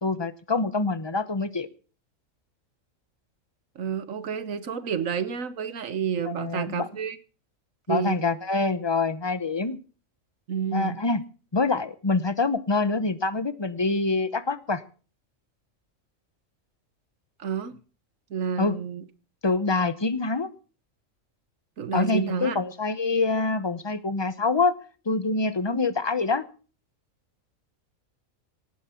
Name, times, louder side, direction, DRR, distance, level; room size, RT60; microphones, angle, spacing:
voice 1, 0.0-1.7 6.2-6.9 7.9-9.8 10.7-11.2 11.5-14.8 18.6-18.8 19.4-20.5 21.9-24.8 25.1-26.5, left 3 dB, 25° left, 0.9 m, -25 dB
voice 2, 3.7-7.2 7.9-8.2 10.5-11.0 17.4-17.8 18.3-19.0 21.8-22.6, right 7 dB, 85° right, 1.6 m, -29 dB
18.0 x 9.8 x 5.8 m
omnidirectional pair, 1.3 m